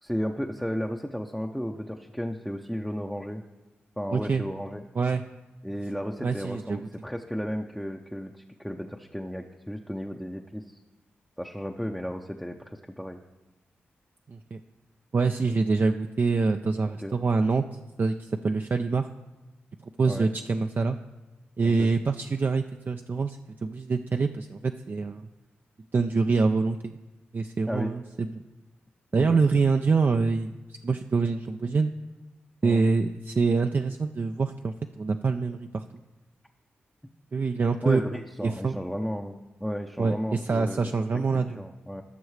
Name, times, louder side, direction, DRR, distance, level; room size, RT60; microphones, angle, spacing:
voice 1, 0.0-3.4 4.0-4.8 5.6-10.8 11.4-13.2 16.9-17.2 20.1-20.3 21.6-21.9 27.7-27.9 29.1-29.4 32.6-32.8 37.8-41.0 41.3-42.0, equal, ahead, 2 dB, 0.6 m, -34 dB
voice 2, 4.1-4.4 5.0-5.2 6.2-6.8 14.3-14.6 15.1-17.6 18.0-19.1 20.0-21.0 21.6-25.3 25.9-26.9 27.3-28.3 29.1-30.5 30.8-31.9 32.6-35.8 37.3-38.0 38.4-38.8 40.0-41.6, right 4 dB, 45° right, 6 dB, 0.4 m, -25 dB
16.0 x 6.2 x 3.2 m, 1.1 s
supercardioid pair, 40°, 5 cm